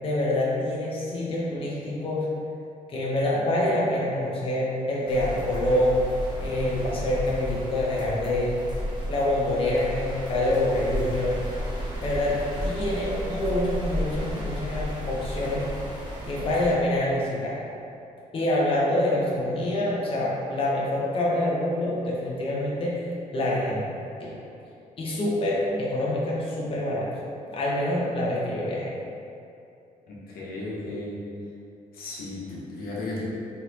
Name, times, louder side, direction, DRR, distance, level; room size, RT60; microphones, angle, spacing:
voice 1, 0.0-2.3 2.9-6.1 6.4-8.6 9.1-11.4 12.0-15.7 16.3-17.6 18.3-23.0 23.3-23.8 24.2-24.4 25.0-27.2 27.5-28.9, left 1 dB, 35° left, -5 dB, 0.8 m, -26 dB
sound 1, 5.1-16.7, equal, 30° right, 1.0 m, -33 dB
voice 2, 30.1-31.2 31.9-33.2, left 2 dB, 85° left, -6 dB, 1.1 m, -35 dB
4.0 x 3.9 x 2.8 m, 2.6 s
cardioid pair, 135°, 15 cm